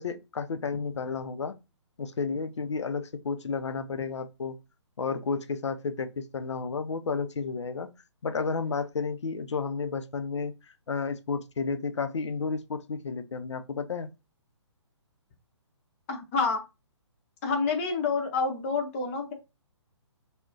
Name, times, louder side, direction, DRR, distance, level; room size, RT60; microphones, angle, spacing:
voice 1, 0.0-1.5 2.0-4.6 5.0-7.9 8.2-14.1, left 5 dB, 70° left, 0.4 m, -32 dB
voice 2, 16.1-16.6 17.4-19.3, left 4 dB, 25° left, 0.6 m, -28 dB
2.3 x 2.1 x 3.7 m
figure-of-eight pair, 135°, 15 cm